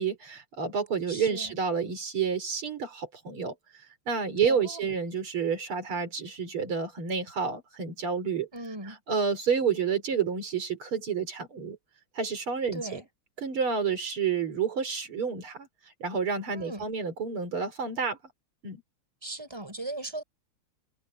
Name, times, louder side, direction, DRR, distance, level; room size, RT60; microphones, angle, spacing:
voice 1, 0.0-3.5 4.1-8.5 8.9-11.8 12.1-13.0 13.4-15.7 16.0-18.2 18.6-18.8, right 6 dB, 90° right, 4.6 m, -29 dB
voice 2, 1.1-1.5 4.4-4.9 8.5-9.0 12.7-13.0 16.5-16.9 19.2-20.2, right 2 dB, 10° right, 4.5 m, -38 dB
omnidirectional pair, 2.3 m